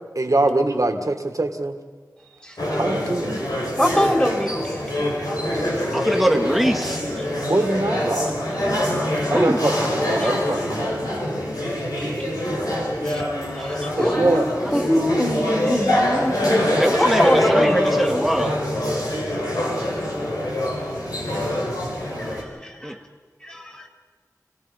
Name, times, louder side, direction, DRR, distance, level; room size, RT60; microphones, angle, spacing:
voice 1, 0.2-1.7 2.8-3.4 7.4-8.4 9.3-11.0 14.0-14.4, right 2 dB, 60° right, 5 dB, 1.9 m, -23 dB
sound 1, 2.6-22.4, left 1 dB, 85° left, 4.8 m, -24 dB
voice 2, 3.8-5.1 7.2-7.5 8.5-8.6 10.2-10.4 11.7-12.2 12.6-14.4 14.7-16.4 17.0-18.3 21.3-21.4 22.2-23.0 23.4-23.9, equal, 15° left, 2 dB, 3.5 m, -25 dB
voice 3, 5.9-7.0 9.3-9.6 14.0-14.9 15.6-15.7 16.8-18.6 22.8-23.0, equal, ahead, 4 dB, 1.9 m, -23 dB
29.0 x 17.0 x 5.3 m, 1.4 s
wide cardioid pair, 45°, 6 cm